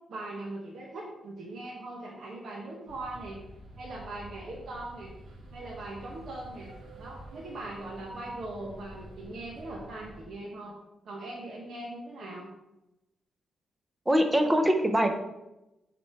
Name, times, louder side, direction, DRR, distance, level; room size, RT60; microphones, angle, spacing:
voice 1, 0.1-3.4 3.8-5.1 5.5-6.7 7.0-10.7 11.0-12.5, right 2 dB, 55° right, -1 dB, 1.2 m, -40 dB
sound 1, 2.9-10.2, right 1 dB, 90° right, 1.9 m, -48 dB
voice 2, 14.1-15.1, equal, 10° right, 5 dB, 0.7 m, -23 dB
7.3 x 4.2 x 4.5 m, 0.94 s
wide cardioid pair, 175°, 0 cm